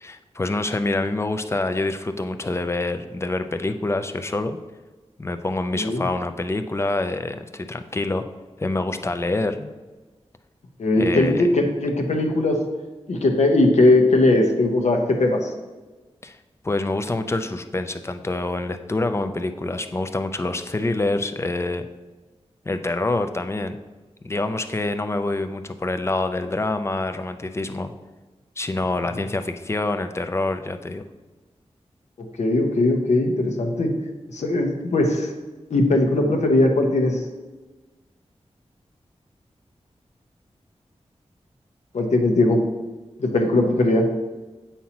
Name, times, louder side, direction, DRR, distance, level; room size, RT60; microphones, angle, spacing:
voice 1, 0.0-4.6 5.2-8.2 8.6-9.7 11.0-11.5 16.2-16.4 16.6-21.8 22.7-23.8 24.2-27.9 28.6-31.0, left 2 dB, 25° left, 8 dB, 0.5 m, -26 dB
voice 2, 5.7-6.0 10.8-12.6 13.1-15.5 32.4-33.9 34.3-35.3 35.7-37.2 41.9-42.6 43.2-44.1, left 2 dB, 85° left, 2 dB, 1.0 m, -19 dB
8.4 x 5.6 x 2.9 m, 1.2 s
wide cardioid pair, 105°, 11 cm